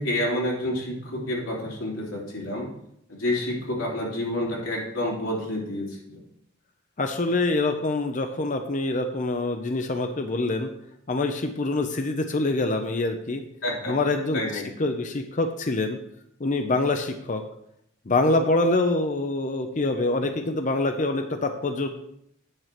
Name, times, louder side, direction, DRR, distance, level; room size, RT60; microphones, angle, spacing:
voice 1, 0.0-2.7 3.1-6.2 13.6-13.9 14.3-14.6, left 1 dB, 80° left, -3 dB, 3.1 m, -29 dB
voice 2, 7.0-10.7 11.1-13.4 13.9-16.0 16.4-17.4 18.1-21.9, left 2 dB, 40° left, 6 dB, 0.6 m, -25 dB
9.4 x 4.6 x 5.9 m, 0.73 s
head